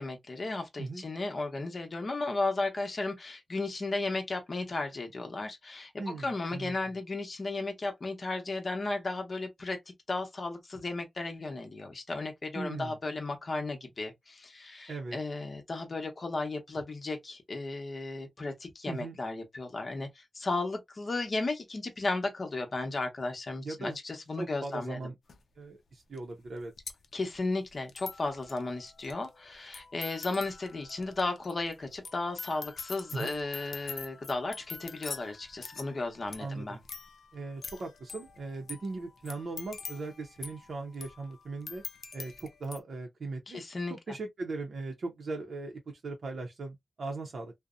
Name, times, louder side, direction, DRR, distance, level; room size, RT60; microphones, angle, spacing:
voice 1, 0.0-9.8 10.1-25.0 27.1-36.8 43.5-44.0, left 3 dB, 40° left, 0.8 m, -34 dB
voice 2, 6.0-6.9 12.5-13.0 14.9-15.2 18.9-19.2 23.6-24.0 24.4-25.1 25.6-26.7 33.1-33.3 36.4-36.8 37.3-41.8 42.1-43.6 43.9-47.5, right 3 dB, 65° right, 0.6 m, -39 dB
sound 1, 25.3-25.4 26.2-26.3 26.4-42.8, left 5 dB, 75° left, 0.4 m, -45 dB
2.7 x 2.0 x 2.3 m
wide cardioid pair, 125°, 0 cm